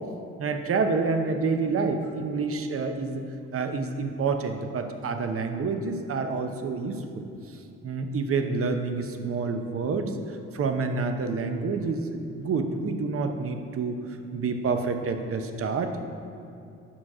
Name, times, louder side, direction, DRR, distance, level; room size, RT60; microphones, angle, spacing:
voice 1, 0.4-3.2 3.5-7.2 7.8-10.1 10.5-14.0 14.3-16.0, right 4 dB, 50° right, 6 dB, 0.8 m, -28 dB
8.8 x 5.9 x 4.9 m, 2.6 s
cardioid pair, 90°, 30 cm